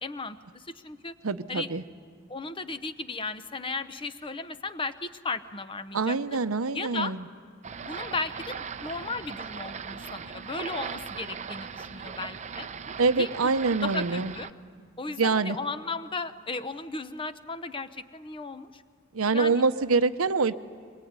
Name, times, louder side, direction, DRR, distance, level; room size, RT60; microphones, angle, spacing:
voice 1, 0.0-1.1 1.5-1.7 2.3-6.2 6.7-7.1 7.8-12.7 13.2-14.5 15.0-18.8 19.3-19.6, left 3 dB, 25° left, 12 dB, 0.8 m, -35 dB
voice 2, 1.2-1.8 5.9-7.3 13.0-14.3 15.2-15.6 19.1-20.5, right 4 dB, 85° right, 12 dB, 0.8 m, -25 dB
sound 1, 7.6-14.5, right 6 dB, 35° right, 0.6 m, -39 dB
24.0 x 21.5 x 9.5 m, 2.1 s
head